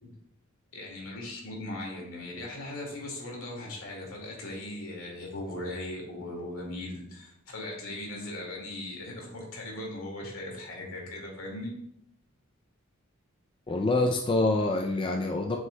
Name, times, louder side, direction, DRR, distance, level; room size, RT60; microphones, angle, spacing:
voice 1, 0.7-11.7, left 1 dB, 75° left, -1 dB, 2.1 m, -38 dB
voice 2, 13.7-15.6, left 2 dB, 25° left, 2 dB, 0.3 m, -26 dB
7.6 x 6.2 x 2.2 m, 0.77 s
head